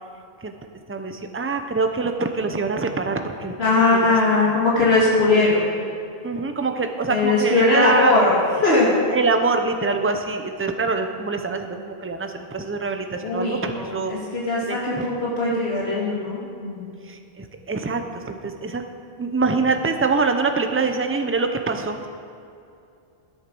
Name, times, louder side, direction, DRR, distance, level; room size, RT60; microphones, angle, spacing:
voice 1, 0.9-4.5 6.2-8.2 9.1-14.2 14.6-15.0 17.0-18.8 19.2-22.1, right 4 dB, 15° right, 6 dB, 0.6 m, -25 dB
voice 2, 3.6-5.7 7.1-8.3 8.6-9.0 13.2-16.9, left 2 dB, 70° left, -6 dB, 2.2 m, -20 dB
13.0 x 8.7 x 6.1 m, 2.5 s
omnidirectional pair, 1.1 m